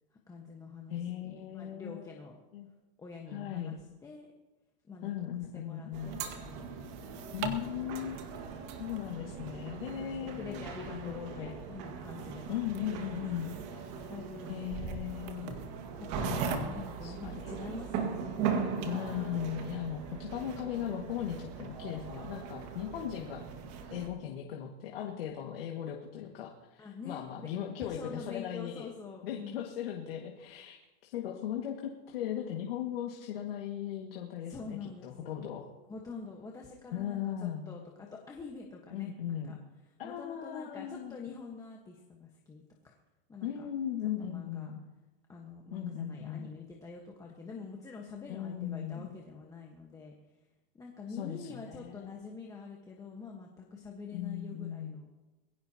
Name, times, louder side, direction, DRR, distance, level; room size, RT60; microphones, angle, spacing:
voice 1, 0.3-2.4 3.0-4.3 4.9-7.3 9.1-9.6 9.9-10.0 10.4-12.6 12.9-14.5 16.0-18.9 26.8-27.5 27.8-29.7 34.5-35.5 35.9-39.6 40.0-43.0 43.3-43.7 44.2-44.7 45.3-50.1 50.7-55.1, left 4 dB, 10° left, 0 dB, 1.4 m, -46 dB
voice 2, 0.9-2.1 2.5-2.7 3.3-3.7 5.0-6.2 7.3-8.3 8.8-11.5 12.5-13.5 14.5-15.7 16.2-16.7 17.0-17.5 18.8-23.5 23.9-28.9 29.2-30.8 31.0-35.6 36.9-37.8 38.9-39.6 40.0-41.1 43.4-44.8 45.7-46.5 48.3-49.1 51.2-52.1 54.1-55.0, left 10 dB, 75° left, 1 dB, 2.1 m, -38 dB
sound 1, 5.9-24.1, right 6 dB, 45° right, 2.0 m, -39 dB
22.5 x 16.0 x 3.0 m, 1.1 s
supercardioid pair, 155°, 30 cm